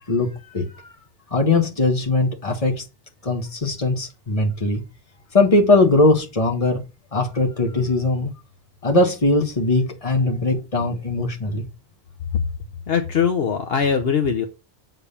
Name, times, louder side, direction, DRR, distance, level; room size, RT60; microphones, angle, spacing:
voice 1, 0.1-0.7 1.3-2.8 3.2-4.8 5.3-6.8 7.1-8.3 8.8-11.7, left 2 dB, 35° left, 1.4 m, -20 dB
voice 2, 12.9-14.5, left 6 dB, 65° left, 1.1 m, -21 dB
7.2 x 4.0 x 6.7 m
omnidirectional pair, 1.1 m